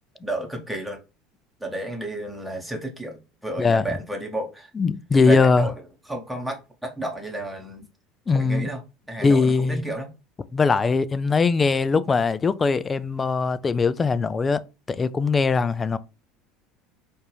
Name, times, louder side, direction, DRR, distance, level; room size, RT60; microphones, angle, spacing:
voice 1, 0.2-1.0 1.6-4.7 5.1-5.7 6.1-7.8 8.4-8.8 9.1-10.1, right 1 dB, ahead, 0.9 m, -32 dB
voice 2, 4.7-5.7 8.3-8.7 9.2-9.8 10.5-14.6 14.9-16.0, left 4 dB, 25° left, 0.3 m, -21 dB
4.4 x 2.5 x 3.2 m
figure-of-eight pair, 70°, 0 cm